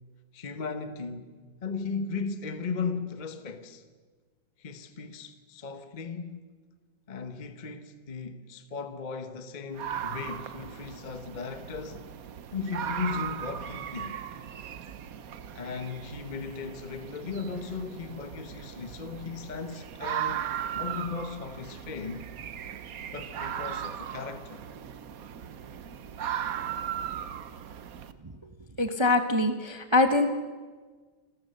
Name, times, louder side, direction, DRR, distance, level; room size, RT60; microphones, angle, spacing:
voice 1, 0.3-1.3 1.6-3.8 4.6-6.5 7.1-12.1 12.5-14.1 15.5-22.3 23.1-24.7, left 5 dB, 35° left, 0.7 m, -37 dB
sound 1, 9.7-28.1, right 9 dB, 55° right, 1.1 m, -37 dB
voice 2, 28.8-30.3, left 2 dB, 35° right, 0.4 m, -24 dB
28.5 x 14.0 x 6.7 m
omnidirectional pair, 2.3 m